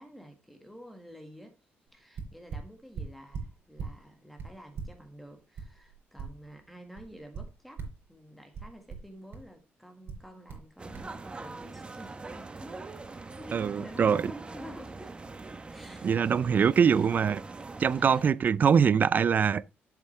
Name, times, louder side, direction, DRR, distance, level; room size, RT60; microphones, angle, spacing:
voice 1, 0.0-1.6 1.9-15.1 15.7-16.1 16.4-17.1 17.9-18.2 18.6-18.7, equal, ahead, 1.5 m, -49 dB
sound 1, 1.9-2.0 2.2-4.0 4.4-6.6 7.0-8.1 8.5-9.5 10.1-10.7 10.9-11.1, right 5 dB, 60° right, 4.3 m, -40 dB
sound 2, 10.8-18.3, right 3 dB, 25° right, 0.9 m, -43 dB
voice 2, 13.5-14.2 16.0-17.4 17.8-19.7, right 7 dB, 45° right, 0.4 m, -23 dB
8.3 x 7.1 x 3.2 m
cardioid pair, 110°, 4 cm